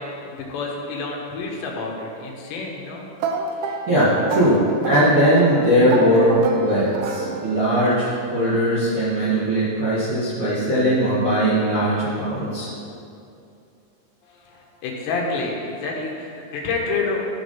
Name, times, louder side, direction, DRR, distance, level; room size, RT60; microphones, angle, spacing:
voice 1, 0.0-3.1 14.3-17.2, left 3 dB, 80° left, -1 dB, 3.4 m, -28 dB
sound 1, 3.2-7.8, right 5 dB, 80° right, 2.7 m, -29 dB
voice 2, 3.9-4.6 4.8-12.7, equal, 45° right, -12 dB, 2.0 m, -19 dB
12.0 x 4.9 x 5.5 m, 2.6 s
omnidirectional pair, 5.1 m